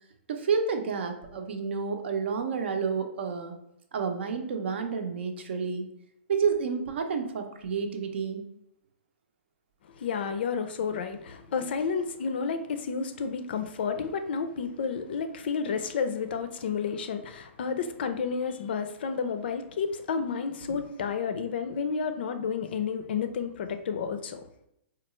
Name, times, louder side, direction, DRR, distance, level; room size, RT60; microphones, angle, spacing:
voice 1, 0.3-3.6 3.9-5.9 6.3-8.5, right 5 dB, 60° right, 0.6 m, -30 dB
voice 2, 10.0-24.5, left 6 dB, 55° left, 0.4 m, -31 dB
4.4 x 2.3 x 3.0 m
hypercardioid pair, 165°, 7 cm